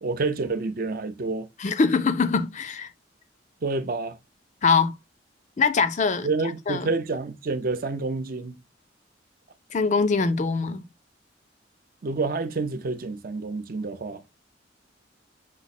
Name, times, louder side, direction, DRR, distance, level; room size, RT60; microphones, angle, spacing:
voice 1, 0.0-1.5 3.6-4.2 6.2-8.6 12.0-14.2, right 3 dB, 50° right, 0.5 m, -28 dB
voice 2, 1.6-2.9 4.6-4.9 5.6-6.3 6.7-6.9 9.7-10.8, left 4 dB, 40° left, 0.4 m, -23 dB
5.9 x 2.0 x 4.1 m
head